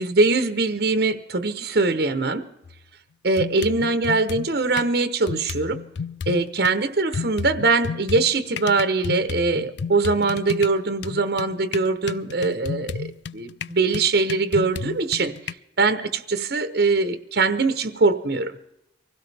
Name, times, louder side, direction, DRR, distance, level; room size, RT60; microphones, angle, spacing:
voice 1, 0.0-2.5 3.2-5.8 6.3-15.3 15.8-18.6, right 3 dB, 65° right, 10 dB, 1.0 m, -22 dB
sound 1, 2.6-2.8 3.4-4.9 5.3-6.7 7.1-15.5, left 6 dB, 75° left, 0.5 m, -33 dB
24.0 x 16.5 x 3.4 m, 0.91 s
head